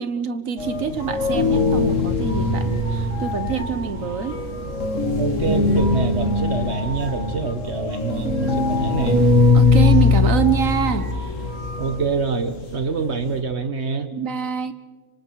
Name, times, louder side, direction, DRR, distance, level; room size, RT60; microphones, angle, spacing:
voice 1, 0.0-4.4 9.5-11.1 14.1-14.7, right 7 dB, 80° right, 11 dB, 1.6 m, -25 dB
sound 1, 0.6-13.4, left 3 dB, 70° left, 2.5 m, -21 dB
voice 2, 5.2-9.3 11.8-14.1, right 4 dB, 55° right, 9 dB, 1.5 m, -26 dB
26.0 x 25.0 x 4.7 m, 1.3 s
omnidirectional pair, 1.4 m